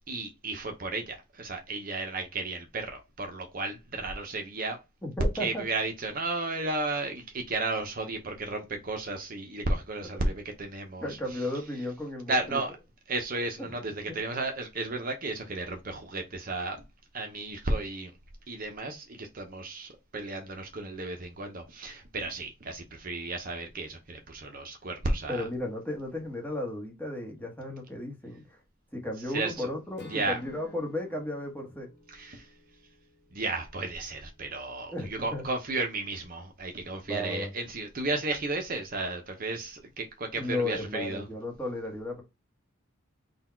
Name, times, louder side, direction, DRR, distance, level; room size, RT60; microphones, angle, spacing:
voice 1, 0.1-4.8 5.4-11.4 12.3-12.7 13.1-16.8 17.1-18.1 18.5-25.4 29.3-29.7 30.1-30.4 32.1-32.5 33.3-41.3, right 2 dB, 40° right, 0.6 m, -33 dB
voice 2, 5.0-5.7 11.0-12.6 13.6-13.8 14.1-14.2 25.3-28.4 28.9-31.9 34.9-35.4 37.1-37.5 40.3-42.2, left 1 dB, 10° left, 1.0 m, -34 dB
Acoustic guitar / Strum, 30.0-34.1, left 2 dB, 50° left, 0.9 m, -53 dB
4.0 x 2.3 x 4.3 m
head